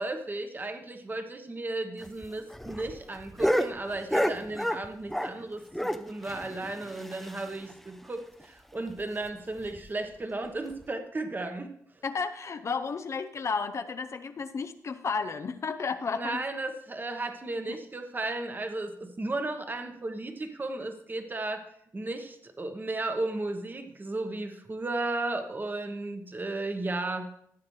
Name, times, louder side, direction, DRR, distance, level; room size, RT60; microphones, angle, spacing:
voice 1, 0.0-11.7 16.1-21.6 21.9-27.2, right 2 dB, 30° right, 6 dB, 1.2 m, -34 dB
sound 1, 2.0-5.4 5.7-7.7 8.0-8.1 8.4-8.5 8.9-9.0 9.6-9.9 10.7-10.8, equal, ahead, 0.6 m, -31 dB
voice 2, 12.0-16.4 17.7-17.8, left 5 dB, 50° left, 9 dB, 0.5 m, -32 dB
14.5 x 7.7 x 3.2 m, 0.70 s
cardioid pair, 65°, 6 cm